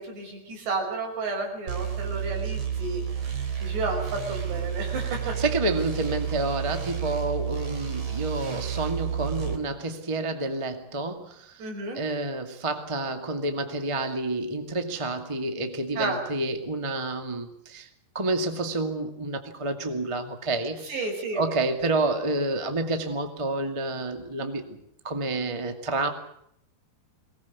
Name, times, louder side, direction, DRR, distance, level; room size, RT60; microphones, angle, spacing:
voice 1, 0.0-5.4 11.6-12.0 16.0-16.2 20.8-21.4, right 3 dB, 70° right, 1 dB, 7.9 m, -32 dB
sound 1, 1.7-9.6, right 8 dB, 40° right, 3.8 m, -31 dB
voice 2, 5.4-11.6 11.9-17.9 18.1-20.8 21.3-24.8 25.0-26.1, right 2 dB, 20° right, 6 dB, 0.8 m, -29 dB
22.5 x 19.5 x 8.4 m, 0.72 s
omnidirectional pair, 5.0 m